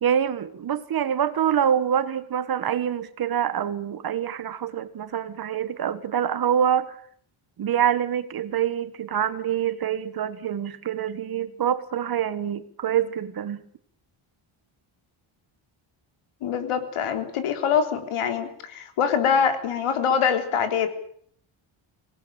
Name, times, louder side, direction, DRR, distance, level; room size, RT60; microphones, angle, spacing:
voice 1, 0.0-7.0 7.6-13.6, right 9 dB, 45° right, 13 dB, 1.5 m, -25 dB
voice 2, 16.4-20.9, left 7 dB, 85° left, 7 dB, 4.0 m, -24 dB
25.5 x 18.5 x 8.9 m, 0.63 s
cardioid pair, 175°, 49 cm